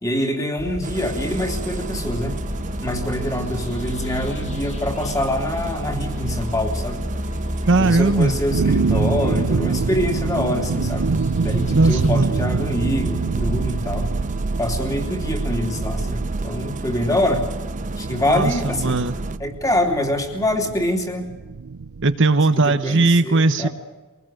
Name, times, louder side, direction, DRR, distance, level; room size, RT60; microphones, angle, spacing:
voice 1, 0.0-2.4 2.8-7.0 7.8-11.1 11.4-14.1 14.6-17.5 18.0-19.0 19.4-21.3 22.6-23.7, left 1 dB, 15° left, 3 dB, 3.1 m, -25 dB
sound 1, 0.6-12.2, left 1 dB, 30° left, 1.7 m, -33 dB
Engine starting, 0.8-19.4, right 2 dB, 35° right, 0.9 m, -31 dB
voice 2, 7.7-8.4 11.7-12.3 18.3-19.2 22.0-23.7, right 2 dB, 55° right, 10 dB, 1.0 m, -18 dB
sound 2, 8.5-22.1, right 4 dB, 85° right, 0.6 m, -26 dB
23.5 x 19.0 x 7.8 m, 1.2 s
head